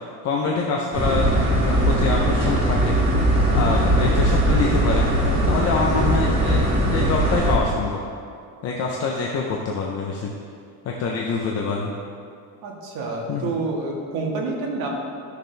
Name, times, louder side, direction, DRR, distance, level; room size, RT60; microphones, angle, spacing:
voice 1, 0.2-3.0 3.5-5.0 5.5-8.0 8.6-10.3 10.8-11.9 13.3-13.6, left 4 dB, 35° left, -1 dB, 0.6 m, -25 dB
sound 1, 0.9-7.6, right 1 dB, 15° right, 2.0 m, -20 dB
voice 2, 3.5-3.9 12.6-14.9, right 3 dB, 55° right, -2 dB, 1.8 m, -28 dB
12.5 x 6.6 x 3.3 m, 2.4 s
cardioid pair, 170°, 42 cm